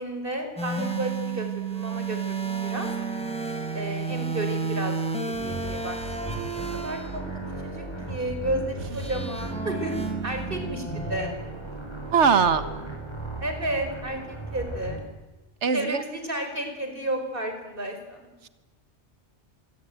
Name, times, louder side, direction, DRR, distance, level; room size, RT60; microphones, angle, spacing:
voice 1, 0.0-2.9 3.7-5.0 5.3-6.0 6.2-6.4 6.7-7.2 7.6-11.3 13.4-15.0 15.7-18.3, right 1 dB, 50° right, 6 dB, 5.3 m, -32 dB
sound 1, 0.6-7.1 9.0-11.3, right 4 dB, 5° left, 3.4 m, -32 dB
sound 2, 5.3-15.0, right 2 dB, 25° left, 7.1 m, -35 dB
voice 2, 12.1-12.6 15.6-16.0, right 6 dB, 85° right, 11 dB, 1.6 m, -20 dB
26.0 x 21.5 x 9.2 m, 1.1 s
omnidirectional pair, 1.1 m